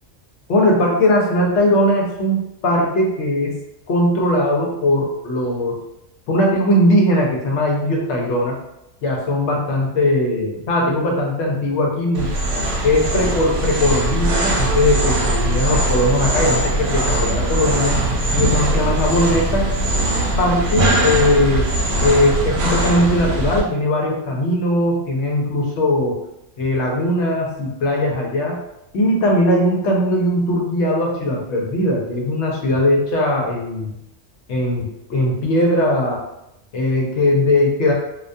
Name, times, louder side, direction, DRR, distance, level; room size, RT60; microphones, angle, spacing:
voice 1, 0.5-3.6 3.9-5.8 6.3-8.6 9.0-12.4 12.8-18.0 18.3-19.7 20.4-21.7 22.0-26.2 26.6-28.6 28.9-33.9 34.5-36.2 36.7-37.9, left 1 dB, 70° left, -1 dB, 0.9 m, -19 dB
sound 1, 12.1-23.6, right 1 dB, 80° right, 0.9 m, -20 dB
2.3 x 2.2 x 2.5 m, 0.85 s
omnidirectional pair, 1.3 m